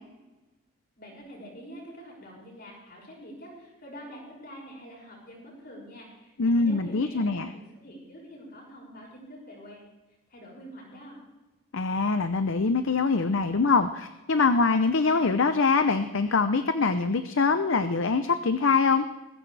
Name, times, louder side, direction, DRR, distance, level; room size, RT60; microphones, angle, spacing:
voice 1, 1.0-9.8 10.3-11.2, equal, 45° left, -2 dB, 6.5 m, -45 dB
voice 2, 6.4-7.5 11.7-19.1, left 4 dB, 60° left, 9 dB, 0.7 m, -24 dB
20.0 x 16.5 x 3.4 m, 1.1 s
head